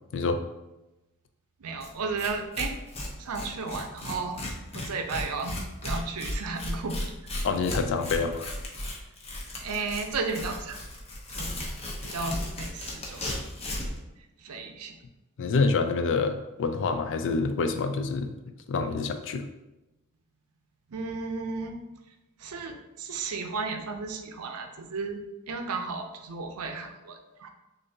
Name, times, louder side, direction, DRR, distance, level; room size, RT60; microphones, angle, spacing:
voice 1, 1.6-2.7 3.2-4.4 4.7-7.1 9.6-10.8 11.4-11.5 12.0-13.4 14.4-15.0 20.9-21.8 22.4-27.5, right 4 dB, 75° right, 5 dB, 0.5 m, -34 dB
Tearing, 1.8-1.9 2.2-2.3 2.5-14.0, left 1 dB, 30° left, 0.7 m, -35 dB
voice 2, 7.4-8.5 15.4-18.3 18.7-19.5, left 4 dB, 55° left, 7 dB, 0.4 m, -27 dB
6.4 x 2.6 x 2.7 m, 1.0 s
head